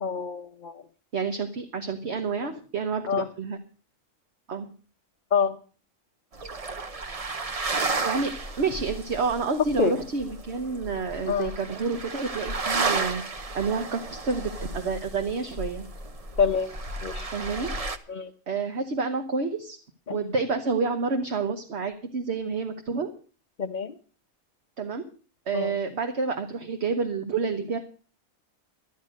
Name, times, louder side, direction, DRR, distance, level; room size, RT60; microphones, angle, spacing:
voice 1, 0.0-0.8 2.4-2.5 3.1-3.3 5.3-5.6 9.8-9.9 11.3-11.5 16.4-16.7 17.0-17.3 18.1-18.3 20.1-20.2 23.6-24.0 25.5-25.7, left 6 dB, 40° left, 1 dB, 0.8 m, -26 dB
voice 2, 1.1-3.6 4.5-4.7 8.0-8.3 8.6-15.9 17.3-17.7 18.5-19.8 20.1-23.1 24.8-25.0 25.5-27.8, right 4 dB, 60° right, 6 dB, 1.4 m, -29 dB
sound 1, 6.3-18.0, right 3 dB, 30° right, 0.9 m, -33 dB
12.5 x 11.0 x 6.4 m, 0.40 s
omnidirectional pair, 1.3 m